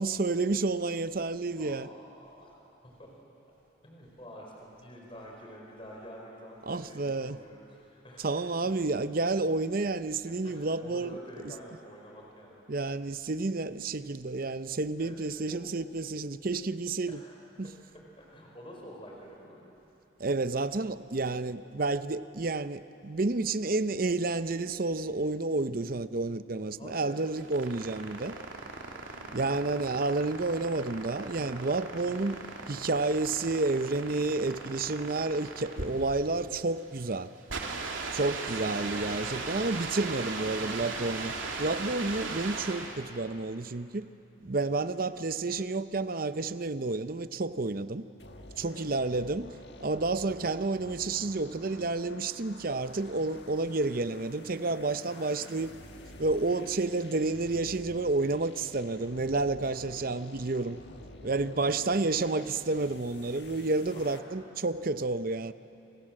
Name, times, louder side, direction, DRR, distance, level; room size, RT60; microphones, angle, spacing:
voice 1, 0.0-1.9 6.7-7.4 8.2-11.2 11.4-11.5 12.7-17.2 17.6-17.7 20.2-28.4 29.3-32.4 32.7-37.3 38.1-44.1 44.4-48.1 48.6-55.7 56.2-60.8 61.2-65.5, right 3 dB, 45° right, 0.7 m, -30 dB
voice 2, 1.6-2.5 3.0-3.1 3.8-8.4 10.4-12.6 15.0-15.2 15.4-15.6 17.1-19.6 26.8-27.3 29.1-29.6 37.4-37.5 38.9-39.5 40.3-40.9 44.6-44.7 48.6-48.8 55.0-55.4 61.1-62.1 63.9-64.3, equal, 25° left, 4.9 m, -49 dB
sound 1, 27.2-43.1, right 3 dB, 80° right, 3.0 m, -38 dB
sound 2, 48.2-64.2, left 1 dB, 55° left, 1.6 m, -50 dB
28.5 x 26.5 x 7.7 m
head